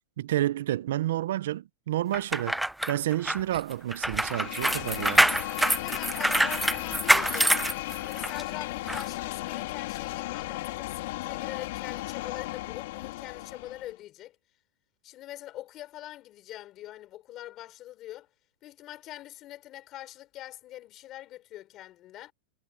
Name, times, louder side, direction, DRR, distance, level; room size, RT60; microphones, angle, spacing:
voice 1, 0.2-2.6 2.9-5.3, right 13 dB, 70° right, 0.5 m, -29 dB
sound 1, 2.1-8.4 8.9-9.0, right 1 dB, ahead, 0.6 m, -25 dB
sound 2, 3.8-3.9 4.7-5.0 6.8-8.3 8.6-9.5, left 12 dB, 85° left, 3.7 m, -52 dB
sound 3, 4.1-13.9, left 18 dB, 60° left, 3.4 m, -35 dB
voice 2, 5.8-7.6 8.0-14.4 15.0-18.3 18.6-22.3, left 14 dB, 30° left, 3.9 m, -43 dB
supercardioid pair, 160°, 0 cm